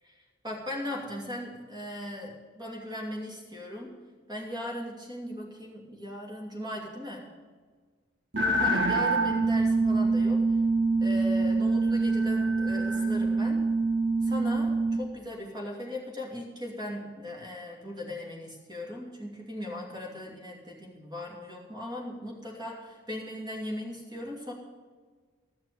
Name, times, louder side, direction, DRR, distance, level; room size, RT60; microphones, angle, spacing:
voice 1, 0.4-3.9 4.3-7.3 8.6-10.4 11.0-13.7 14.2-24.5, left 1 dB, 20° right, -1 dB, 2.7 m, -38 dB
sound 1, 8.3-15.0, right 3 dB, 65° right, 1.6 m, -25 dB
14.0 x 6.5 x 9.4 m, 1.5 s
head